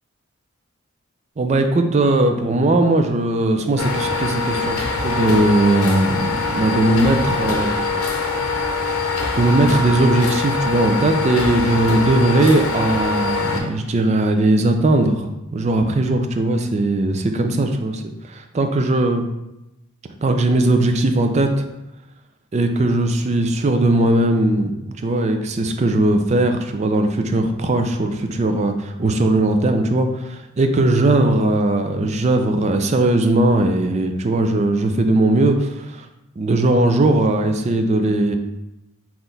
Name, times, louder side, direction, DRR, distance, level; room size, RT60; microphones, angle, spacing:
voice 1, 1.4-7.7 9.3-18.0 18.3-19.3 20.2-21.6 22.5-36.1 36.4-38.4, right 2 dB, 30° right, 6 dB, 0.3 m, -19 dB
sound 1, 3.8-13.6, left 3 dB, 85° left, 0.7 m, -23 dB
3.9 x 3.0 x 3.9 m, 0.93 s
head